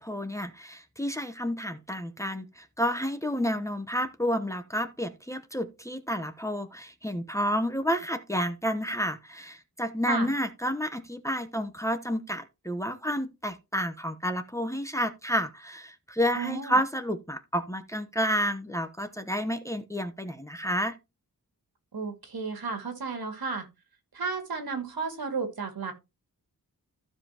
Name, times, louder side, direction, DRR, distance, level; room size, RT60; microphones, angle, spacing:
voice 1, 0.0-20.9, equal, 10° left, 0.9 m, -30 dB
voice 2, 16.3-16.8 21.9-23.7 24.1-25.9, right 4 dB, 75° right, 2.3 m, -33 dB
15.0 x 5.2 x 2.9 m
wide cardioid pair, 115°, 37 cm